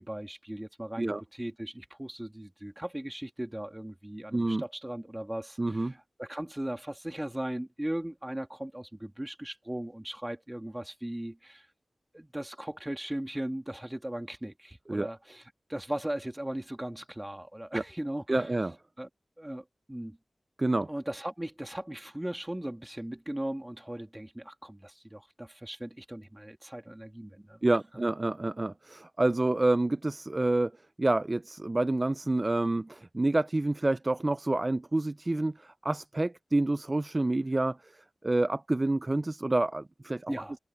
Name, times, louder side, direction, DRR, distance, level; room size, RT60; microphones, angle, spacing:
voice 1, 0.0-11.7 12.1-15.4 15.7-18.5 19.0-19.1 19.4-20.2 20.9-27.6 40.3-40.6, right 1 dB, 15° right, 2.8 m, -38 dB
voice 2, 4.3-4.6 5.6-5.9 14.9-15.1 17.7-17.8 18.3-18.8 20.6-20.9 27.6-30.7 31.0-37.9 38.2-40.3, right 2 dB, 30° right, 0.4 m, -28 dB
cardioid pair, 55°, 0 cm